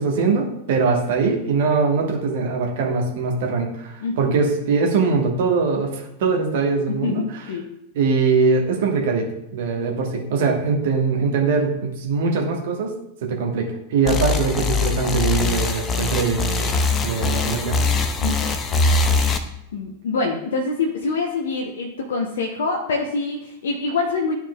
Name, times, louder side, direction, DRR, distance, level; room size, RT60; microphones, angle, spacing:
voice 1, 0.0-7.2 7.9-9.2 9.5-12.9 13.2-16.7 17.0-17.8, right 4 dB, 55° right, 1 dB, 1.3 m, -22 dB
voice 2, 4.0-4.3 6.9-7.7 17.1-17.5 18.2-18.5 19.7-24.3, left 3 dB, 65° left, 1 dB, 0.8 m, -25 dB
sound 1, 14.0-19.4, left 3 dB, 25° left, 0.6 m, -22 dB
12.0 x 4.5 x 2.3 m, 0.81 s
figure-of-eight pair, 90°, 0 cm